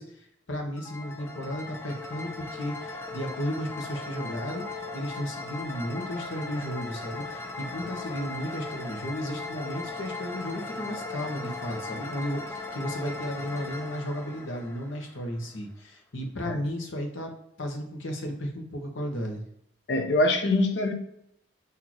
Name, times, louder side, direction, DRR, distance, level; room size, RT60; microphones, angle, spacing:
voice 1, 0.0-17.3 17.6-19.4, equal, 85° left, 1.1 m, -34 dB
sound 1, 0.7-15.5, left 3 dB, 10° left, 0.4 m, -38 dB
voice 2, 19.9-20.9, left 2 dB, 60° left, 0.5 m, -24 dB
6.1 x 2.8 x 3.0 m
head